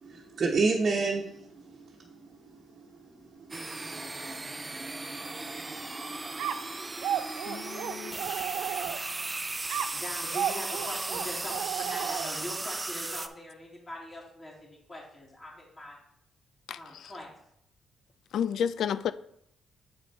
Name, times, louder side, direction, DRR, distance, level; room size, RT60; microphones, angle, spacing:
voice 1, 0.0-2.1 3.3-3.4 3.9-4.0, right 4 dB, 50° right, 1.1 m, -29 dB
sound 1, 3.5-13.3, right 2 dB, 20° right, 0.6 m, -36 dB
sound 2, 6.4-9.2 9.7-12.6, right 10 dB, 80° right, 0.4 m, -34 dB
voice 2, 7.5-8.3 16.7-17.1 18.3-19.1, left 8 dB, 75° left, 0.3 m, -32 dB
voice 3, 9.9-16.0 16.7-17.3, left 1 dB, 25° left, 3.1 m, -42 dB
7.8 x 5.2 x 4.2 m
cardioid pair, 90°, 0 cm